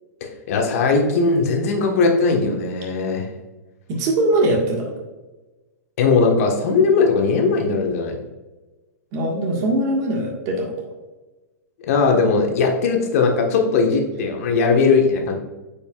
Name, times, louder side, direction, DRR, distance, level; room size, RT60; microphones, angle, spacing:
voice 1, 0.2-3.3 6.0-8.2 11.9-15.4, left 4 dB, 60° left, 2 dB, 1.4 m, -19 dB
voice 2, 3.9-4.9 9.1-10.7, right 1 dB, 40° right, -1 dB, 1.6 m, -21 dB
8.9 x 5.3 x 2.4 m, 1.2 s
hypercardioid pair, 110°, 9 cm